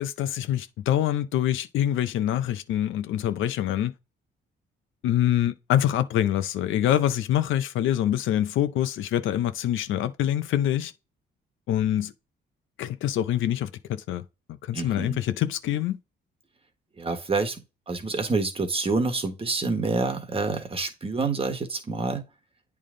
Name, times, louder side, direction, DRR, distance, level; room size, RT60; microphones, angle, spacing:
voice 1, 0.0-3.9 5.0-10.9 11.7-12.1 12.8-14.2 14.5-16.0, left 11 dB, 80° left, 0.6 m, -25 dB
voice 2, 14.7-15.2 17.0-17.6 17.9-22.2, right 3 dB, 30° right, 1.4 m, -27 dB
8.6 x 3.5 x 3.8 m
cardioid pair, 90°, 20 cm